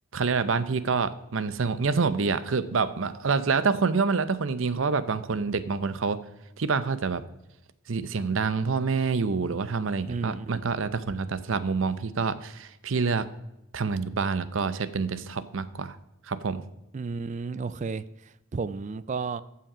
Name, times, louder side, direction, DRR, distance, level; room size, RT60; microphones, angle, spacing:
voice 1, 0.1-6.2 6.6-7.2 7.9-13.3 13.7-16.0 16.3-16.6, right 4 dB, 70° right, 14 dB, 0.6 m, -27 dB
voice 2, 10.1-10.6 16.9-18.0 18.5-19.4, right 4 dB, 35° right, 16 dB, 0.4 m, -32 dB
14.5 x 5.8 x 5.0 m, 0.87 s
head